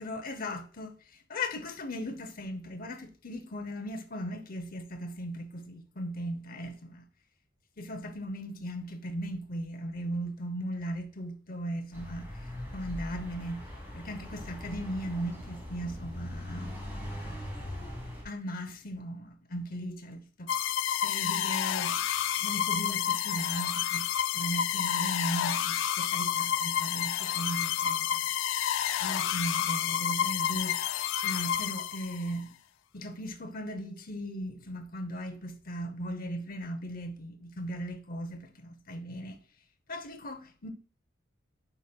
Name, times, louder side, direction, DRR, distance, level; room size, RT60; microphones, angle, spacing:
voice 1, 0.0-7.1 7.8-12.3 12.7-13.7 13.9-16.8 18.2-20.5 21.0-22.0 22.4-24.1 24.3-28.3 29.0-30.9 31.2-32.5 32.9-39.4 39.9-40.7, equal, 45° left, 0.7 m, -37 dB
sound 1, 11.9-18.2, left 1 dB, 10° right, 2.4 m, -41 dB
sound 2, 20.5-32.3, left 10 dB, 70° left, 0.3 m, -30 dB
8.3 x 5.0 x 2.2 m
head